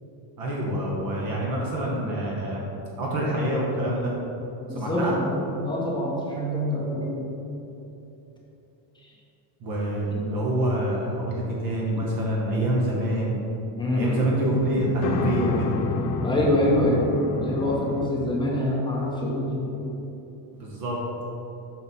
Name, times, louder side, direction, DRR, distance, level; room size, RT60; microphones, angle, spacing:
voice 1, 0.4-2.6 3.0-4.1 4.7-5.1 9.6-13.4 13.9-15.7 18.2-18.3 20.6-21.0, right 1 dB, 45° right, -3 dB, 1.1 m, -26 dB
voice 2, 4.7-7.3 13.8-14.2 16.2-17.0 17.4-19.9, left 1 dB, 10° left, -4 dB, 0.6 m, -25 dB
sound 1, 14.4-18.1, left 3 dB, 75° left, 0.8 m, -28 dB
6.1 x 5.6 x 4.1 m, 3.0 s
cardioid pair, 175°, 48 cm